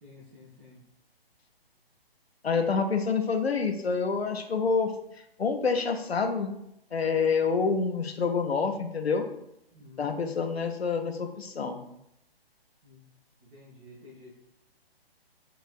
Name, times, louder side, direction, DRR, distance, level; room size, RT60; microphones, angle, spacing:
voice 1, 0.0-0.8 9.7-10.1 12.8-13.0 13.5-14.3, left 2 dB, 20° right, -7 dB, 0.8 m, -51 dB
voice 2, 2.4-4.9 5.4-6.6 6.9-9.3 10.0-11.8, left 5 dB, 80° left, 5 dB, 0.7 m, -27 dB
5.5 x 2.5 x 2.4 m, 0.79 s
figure-of-eight pair, 130°, 31 cm